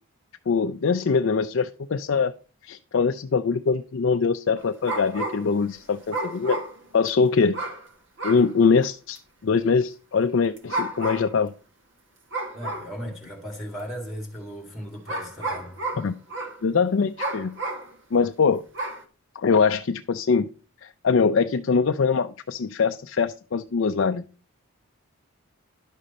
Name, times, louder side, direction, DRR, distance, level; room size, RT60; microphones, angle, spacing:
voice 1, 0.5-2.3 2.6-6.6 6.9-7.6 8.2-11.5 16.0-16.1 16.6-17.5 18.1-18.6 19.4-20.5 20.8-24.2, left 5 dB, 60° left, 0.4 m, -23 dB
sound 1, 4.6-5.6 6.1-7.1 7.5-7.9 8.2-8.5 9.2-9.3 10.6-11.4 12.3-13.0 13.8-13.9 15.1-16.6 17.2-17.9 18.7-19.0, right 2 dB, 55° right, 1.5 m, -31 dB
voice 2, 12.5-15.7, equal, ahead, 2.1 m, -36 dB
11.0 x 6.4 x 4.1 m
head